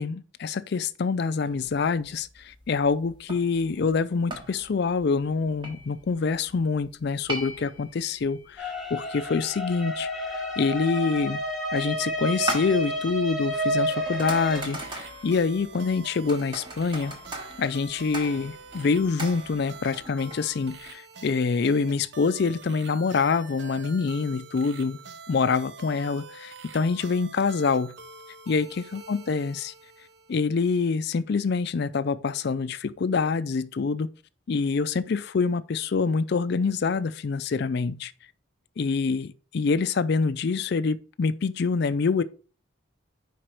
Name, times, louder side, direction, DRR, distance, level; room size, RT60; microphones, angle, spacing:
voice 1, 0.0-10.2 10.6-11.4 11.7-17.1 17.6-25.0 25.3-27.9 28.5-29.7 30.3-34.1 34.5-38.1 38.8-42.2, left 4 dB, 55° left, 0.4 m, -26 dB
sound 1, 1.5-20.9, right 1 dB, 25° right, 1.1 m, -41 dB
sound 2, 8.6-14.6, equal, ahead, 1.2 m, -30 dB
sound 3, 14.3-30.5, right 4 dB, 55° right, 0.6 m, -45 dB
5.0 x 4.8 x 4.4 m
head